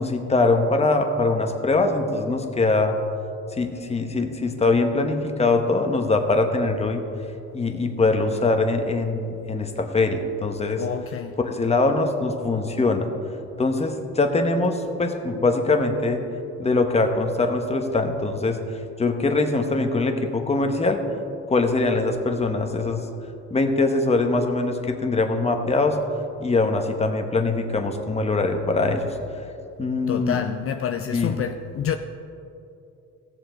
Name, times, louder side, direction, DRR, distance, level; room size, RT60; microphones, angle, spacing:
voice 1, 0.0-3.0 3.5-7.0 7.5-10.8 11.4-13.1 13.6-16.2 16.6-18.6 19.0-21.0 21.5-23.1 23.5-26.0 26.4-29.1 29.8-30.4 31.1-31.3, left 3 dB, 20° left, 1.0 m, -22 dB
voice 2, 10.8-11.4 30.1-32.0, left 8 dB, 50° left, 0.5 m, -28 dB
16.5 x 7.1 x 3.9 m
cardioid pair, 100°, 30 cm